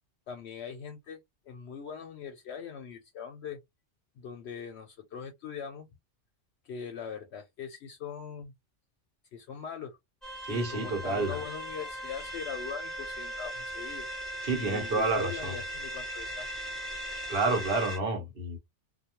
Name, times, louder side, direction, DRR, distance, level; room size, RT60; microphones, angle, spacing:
voice 1, 0.3-3.6 4.2-5.9 6.6-8.5 9.3-10.0 10.5-14.1 14.5-16.5, left 7 dB, 70° left, 0.8 m, -41 dB
sound 1, 10.2-18.0, equal, ahead, 0.7 m, -38 dB
voice 2, 10.4-11.4 14.4-15.6 17.3-18.6, right 3 dB, 55° right, 1.1 m, -29 dB
2.2 x 2.2 x 2.8 m
omnidirectional pair, 1.2 m